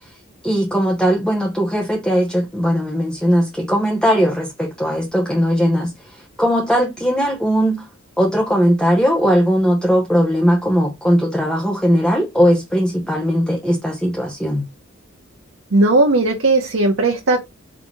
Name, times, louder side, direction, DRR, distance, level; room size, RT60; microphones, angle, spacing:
voice 1, 0.4-5.9 6.4-7.8 8.2-14.6, equal, 5° left, 0.8 m, -18 dB
voice 2, 15.7-17.4, right 2 dB, 80° right, 0.9 m, -16 dB
4.1 x 2.8 x 4.5 m
head